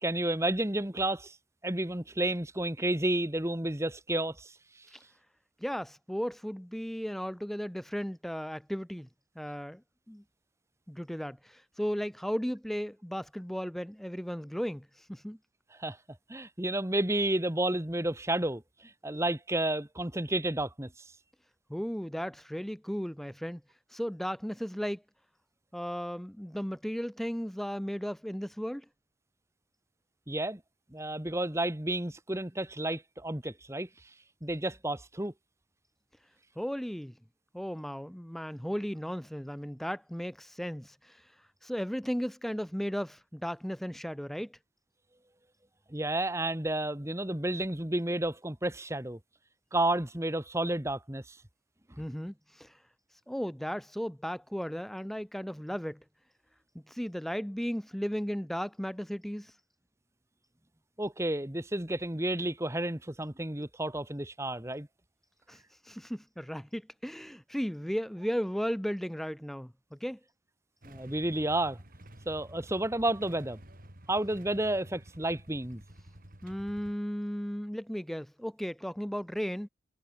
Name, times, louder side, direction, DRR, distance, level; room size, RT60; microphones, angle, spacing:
voice 1, 0.0-1.3 1.6-4.5 15.8-16.0 16.3-18.6 19.0-20.9 30.3-30.6 30.9-33.9 34.4-35.3 45.9-49.2 49.7-51.4 61.0-64.9 70.8-71.8 72.2-73.6 74.1-75.8, right 1 dB, 15° right, 1.4 m, -31 dB
voice 2, 5.6-9.1 9.4-9.8 10.1-10.2 10.9-15.4 21.7-23.6 23.9-25.0 25.7-28.9 36.6-37.1 37.5-41.3 41.6-44.6 52.0-52.8 53.3-56.0 56.9-59.6 65.5-70.2 76.4-79.7, equal, ahead, 0.4 m, -35 dB
Motorcycle / Engine starting / Idling, 70.8-77.0, right 1 dB, 45° right, 3.1 m, -51 dB
head